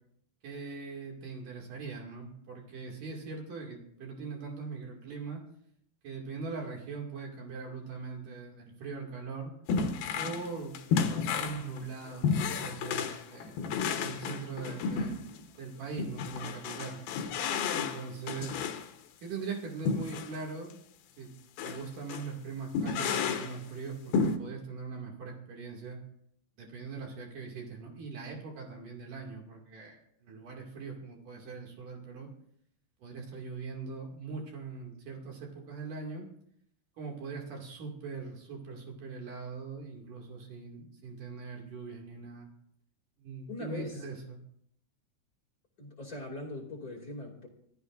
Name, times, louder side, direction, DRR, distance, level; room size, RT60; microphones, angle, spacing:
voice 1, 0.4-5.4 6.0-9.5 10.1-10.8 11.3-13.7 14.0-15.2 15.6-17.0 17.7-18.6 19.2-20.8 21.2-21.3 21.6-26.0 26.6-32.3 33.0-36.3 37.0-42.5 43.2-44.4, right 4 dB, 50° right, 0 dB, 3.4 m, -41 dB
sound 1, 9.7-10.5 10.7-15.4 16.0-18.9 19.8-20.3 20.7-20.8 21.6-21.8 22.1-22.3 22.7-23.6 24.1-24.4, left 5 dB, 70° left, 2.4 m, -32 dB
voice 2, 43.5-44.0 45.8-47.5, left 1 dB, 30° left, -2 dB, 1.9 m, -41 dB
26.0 x 15.5 x 2.6 m, 0.71 s
omnidirectional pair, 5.4 m